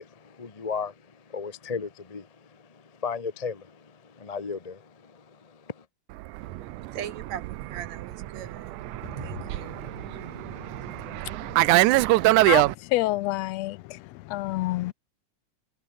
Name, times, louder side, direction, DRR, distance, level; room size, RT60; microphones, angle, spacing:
voice 1, 0.0-5.8, left 5 dB, 40° left, 0.5 m, -36 dB
Fixed-wing aircraft airplane, 6.2-12.7, right 19 dB, 80° right, 2.1 m, -24 dB
voice 2, 6.4-11.1, right 9 dB, 65° right, 3.0 m, -40 dB
voice 3, 12.9-14.0 14.3-14.9, left 18 dB, 80° left, 1.5 m, -27 dB
omnidirectional pair, 3.5 m